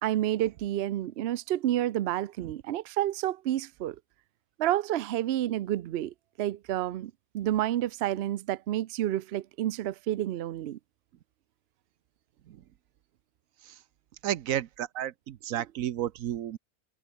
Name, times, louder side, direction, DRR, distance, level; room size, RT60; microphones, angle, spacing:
voice 1, 0.0-4.0 4.6-10.8 15.5-15.6, right 13 dB, 60° right, 0.7 m, -30 dB
voice 2, 14.2-16.6, right 11 dB, 80° right, 1.1 m, -32 dB
omnidirectional pair, 1.4 m